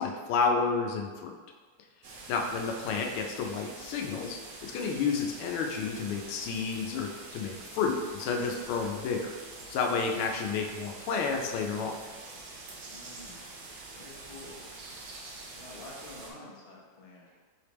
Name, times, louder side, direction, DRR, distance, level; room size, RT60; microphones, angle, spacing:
voice 1, 0.0-1.3 2.3-9.3 9.7-11.9, left 5 dB, 85° left, 2 dB, 1.5 m, -30 dB
sound 1, 2.0-16.3, right 3 dB, 70° right, 1.0 m, -46 dB
voice 2, 2.3-2.6 12.9-13.5 13.9-14.6 15.2-15.3 15.5-17.3, left 2 dB, 50° left, -5 dB, 0.7 m, -49 dB
4.8 x 3.4 x 3.0 m, 1.5 s
omnidirectional pair, 2.3 m